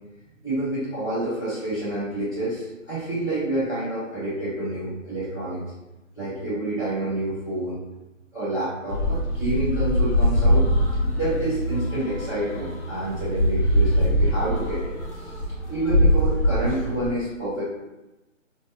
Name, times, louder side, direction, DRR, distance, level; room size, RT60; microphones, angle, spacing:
voice 1, 0.4-5.6 6.1-7.8 8.3-15.4 15.7-17.6, right 1 dB, 5° left, -23 dB, 0.5 m, -28 dB
sound 1, 8.9-17.1, equal, 60° left, 0.9 m, -23 dB
2.8 x 2.2 x 2.5 m, 1.0 s
figure-of-eight pair, 150°, 40 cm